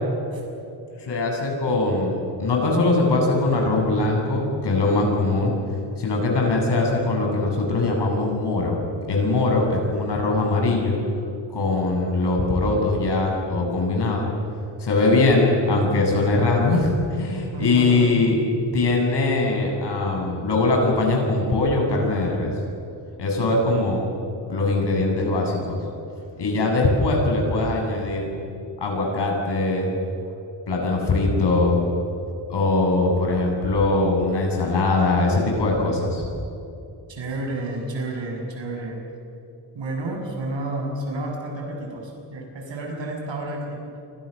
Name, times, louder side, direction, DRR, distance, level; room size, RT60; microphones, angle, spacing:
voice 1, 1.0-5.5 6.0-8.8 9.1-11.0 11.5-14.3 14.8-18.4 18.7-22.5 23.2-24.0 24.5-25.8 26.4-28.3 28.8-29.9 30.7-31.8 32.5-36.2, left 2 dB, 60° left, 0 dB, 7.6 m, -21 dB
voice 2, 17.5-18.1 37.1-39.0 39.7-43.8, right 2 dB, 70° right, 1 dB, 7.2 m, -30 dB
29.5 x 25.0 x 6.7 m, 2.7 s
wide cardioid pair, 135°, 46 cm